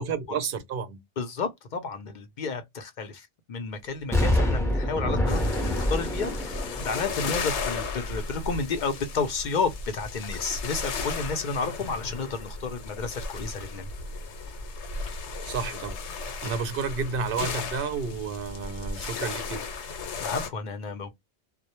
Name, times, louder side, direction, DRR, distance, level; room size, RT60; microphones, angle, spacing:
voice 1, 0.0-1.0 15.4-16.0 16.4-19.7, right 5 dB, 60° right, 0.7 m, -31 dB
voice 2, 1.2-13.9 20.2-21.1, left 4 dB, 55° left, 0.5 m, -31 dB
Explosion, 4.1-8.1 8.5-8.6, left 1 dB, 5° left, 0.5 m, -27 dB
sound 1, 5.3-20.5, left 4 dB, 80° left, 0.9 m, -35 dB
2.2 x 2.0 x 2.8 m
omnidirectional pair, 1.2 m